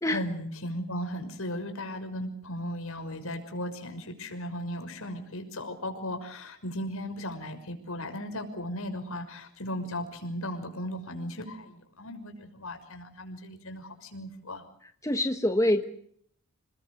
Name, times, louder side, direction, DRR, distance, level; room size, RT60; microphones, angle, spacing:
voice 1, 0.0-14.6, equal, 70° left, 6 dB, 6.1 m, -36 dB
voice 2, 15.0-15.9, left 1 dB, 15° left, 6 dB, 1.3 m, -25 dB
28.5 x 20.5 x 8.0 m, 0.65 s
head